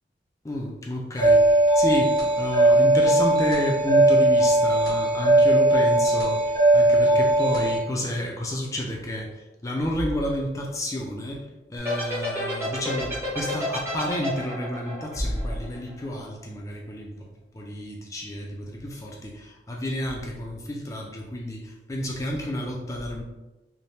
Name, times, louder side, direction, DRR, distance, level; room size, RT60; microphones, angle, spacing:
voice 1, 0.4-17.3 17.5-23.2, left 1 dB, 20° left, 0 dB, 0.4 m, -30 dB
sound 1, 1.1-7.8, right 1 dB, 55° right, 1.4 m, -19 dB
sound 2, 11.8-16.1, left 1 dB, 15° right, 0.8 m, -30 dB
3.2 x 2.2 x 2.7 m, 1.0 s
head